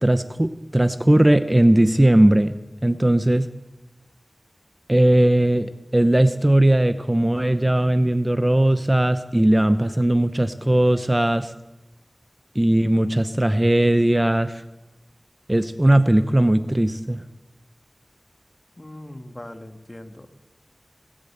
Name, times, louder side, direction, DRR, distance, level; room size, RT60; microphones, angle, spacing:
voice 1, 0.0-2.5 2.8-3.5 4.9-11.5 12.5-14.6 15.5-17.2, right 1 dB, 25° right, 11 dB, 0.7 m, -18 dB
voice 2, 18.8-20.3, left 1 dB, 30° left, 7 dB, 1.5 m, -40 dB
20.0 x 8.7 x 7.9 m, 0.99 s
wide cardioid pair, 55°, 0 cm